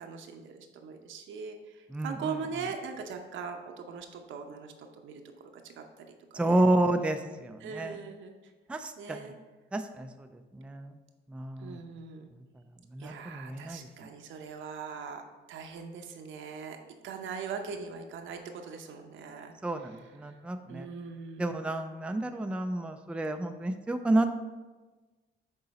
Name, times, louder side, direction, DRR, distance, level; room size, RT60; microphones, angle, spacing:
voice 1, 0.0-4.7 5.0-5.2 5.6-6.7 7.6-8.4 9.0-9.3 11.6-12.3 13.0-16.8 17.0-20.3 20.7-21.5, right 5 dB, 75° right, 5 dB, 0.8 m, -41 dB
voice 2, 6.3-8.0 8.7-9.2 9.7-10.1 10.5-10.9 11.3-11.8 12.9-13.8 19.6-20.9 21.4-24.3, right 1 dB, 5° right, 7 dB, 0.4 m, -30 dB
6.6 x 3.8 x 4.1 m, 1.2 s
cardioid pair, 90°, 20 cm